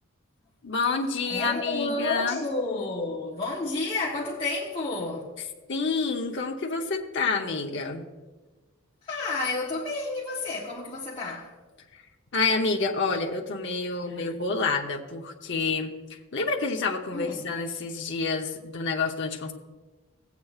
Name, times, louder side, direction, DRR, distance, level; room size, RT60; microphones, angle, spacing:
voice 1, 0.6-2.4 5.7-8.0 12.3-15.9 16.3-19.5, left 4 dB, 60° left, 0.8 m, -28 dB
voice 2, 1.3-5.3 9.0-11.5 17.1-17.5, left 3 dB, 25° left, 1.1 m, -31 dB
17.0 x 8.2 x 2.4 m
head